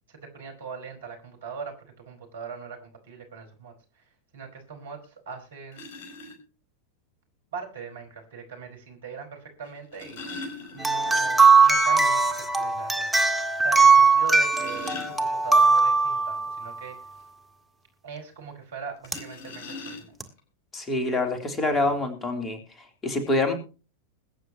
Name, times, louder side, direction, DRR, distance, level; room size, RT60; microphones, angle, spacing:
voice 1, 0.1-4.0 4.3-5.8 7.5-17.0 18.0-20.1, right 5 dB, 60° right, 4 dB, 4.7 m, -40 dB
sound 1, 5.0-5.1 5.7-6.4 7.8-7.9 9.7-11.4 11.7-11.8 12.2-12.3 12.8-12.9 14.2-15.7 19.0-20.4 21.3-21.4 21.7-21.9, left 3 dB, 45° left, 5.1 m, -40 dB
sound 2, 10.8-16.8 19.1-19.2 20.2-20.3, right 4 dB, ahead, 1.7 m, -20 dB
voice 2, 20.7-22.6 23.0-23.5, left 2 dB, 15° left, 5 dB, 3.1 m, -25 dB
21.5 x 9.4 x 2.9 m, 0.34 s
figure-of-eight pair, 90°, 0 cm